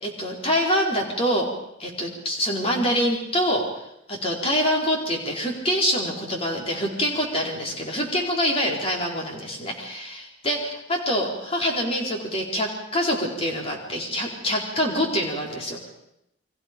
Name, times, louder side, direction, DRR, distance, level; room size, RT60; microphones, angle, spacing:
voice 1, 0.0-1.5 1.8-3.8 4.1-15.9, equal, 30° left, 0 dB, 4.3 m, -25 dB
29.5 x 23.0 x 5.3 m, 0.79 s
head